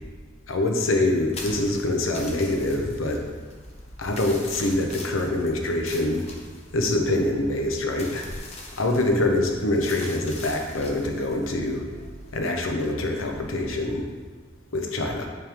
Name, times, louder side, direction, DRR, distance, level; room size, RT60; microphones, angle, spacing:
voice 1, 0.5-3.2 4.0-6.2 6.7-8.3 8.8-11.9 12.3-14.0 14.7-15.3, left 1 dB, 90° left, 3 dB, 0.8 m, -25 dB
sound 1, 1.3-13.8, left 2 dB, 30° left, 0.7 m, -43 dB
8.8 x 3.3 x 3.5 m, 1.4 s
head